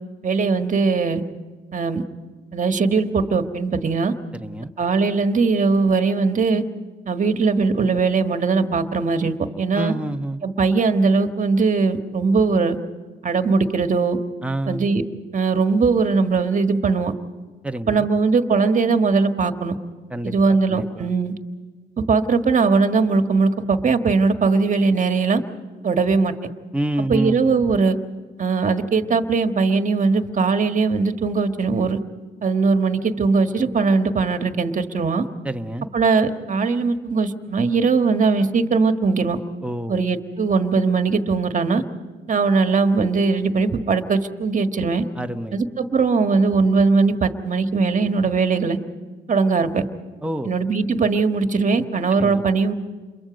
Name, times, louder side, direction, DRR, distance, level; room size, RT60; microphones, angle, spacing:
voice 1, 0.2-1.2 1.7-2.0 2.5-4.1 4.8-6.6 7.1-9.9 10.4-12.8 13.2-14.2 14.7-15.0 15.3-17.1 17.9-19.7 20.2-21.3 22.1-25.4 25.8-26.3 27.1-28.0 28.4-32.0 32.4-35.3 35.9-39.4 39.9-41.8 42.3-45.0 45.5-48.8 49.3-49.8 50.4-52.7, right 4 dB, 40° right, 7 dB, 1.5 m, -20 dB
voice 2, 4.4-4.7 9.7-10.4 14.4-14.9 17.6-18.1 20.1-21.1 26.7-27.6 35.4-35.9 39.6-40.0 45.1-45.6 50.2-50.5 52.2-52.4, right 1 dB, 5° right, 6 dB, 1.0 m, -28 dB
28.5 x 22.5 x 5.2 m, 1.4 s
cardioid pair, 90°, 20 cm